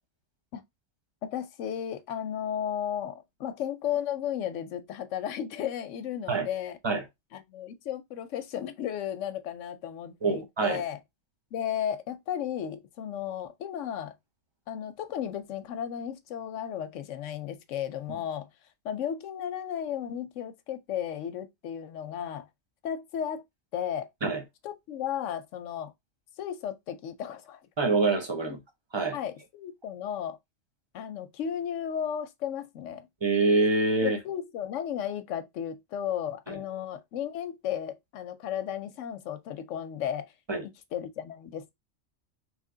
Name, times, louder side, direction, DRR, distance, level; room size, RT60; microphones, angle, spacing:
voice 1, 1.2-6.8 7.3-11.0 11.5-14.1 14.7-18.5 18.8-22.5 22.8-23.4 23.7-24.1 24.6-25.9 26.4-27.6 28.5-28.6 29.1-30.4 30.9-33.1 34.0-40.3 40.6-41.7, left 9 dB, 90° left, 1.0 m, -34 dB
voice 2, 10.2-10.8 24.2-24.4 27.8-28.6 28.9-29.2 33.2-34.2 36.5-36.6 40.5-40.6, right 3 dB, 25° right, 0.8 m, -25 dB
3.3 x 3.1 x 3.7 m
omnidirectional pair, 1.3 m